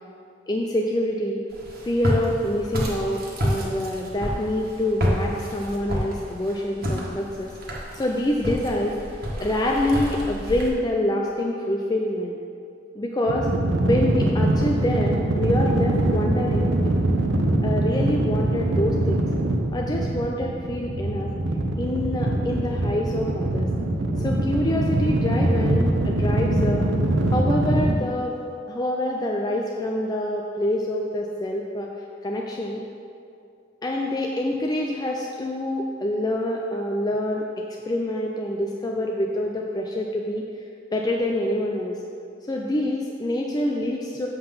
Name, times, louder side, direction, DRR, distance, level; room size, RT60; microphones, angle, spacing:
voice 1, 0.5-1.4 1.8-7.5 7.9-9.0 9.4-12.4 12.9-13.5 13.8-17.1 17.6-19.3 19.7-21.3 21.8-23.7 24.2-26.9 27.3-28.4 28.7-31.9 32.2-32.8 33.8-37.5 37.9-40.4 40.9-42.0 42.5-44.3, left 1 dB, 20° left, 0 dB, 0.5 m, -26 dB
Walk footsteps, 1.5-10.7, equal, 55° right, 1.6 m, -29 dB
sound 1, 13.3-28.0, right 1 dB, 75° right, 0.7 m, -23 dB
7.6 x 5.8 x 5.7 m, 2.4 s
head